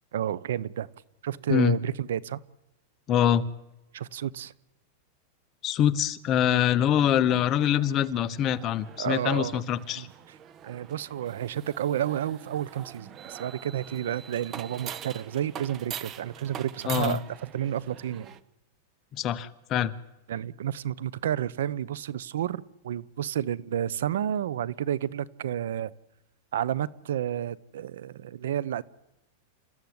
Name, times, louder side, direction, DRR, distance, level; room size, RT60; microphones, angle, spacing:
voice 1, 0.1-0.9 1.2-2.4 3.9-4.5 9.0-9.6 10.0-10.1 10.6-18.3 20.3-25.9 26.5-28.8, right 10 dB, 85° right, 22 dB, 0.9 m, -31 dB
voice 2, 3.1-3.4 5.6-10.1 16.9-17.2 19.1-19.9, left 10 dB, 30° left, 11 dB, 1.1 m, -24 dB
sound 1, 7.3-18.4, right 9 dB, 25° right, 1.0 m, -44 dB
28.5 x 14.5 x 9.6 m, 0.94 s
supercardioid pair, 155°, 0 cm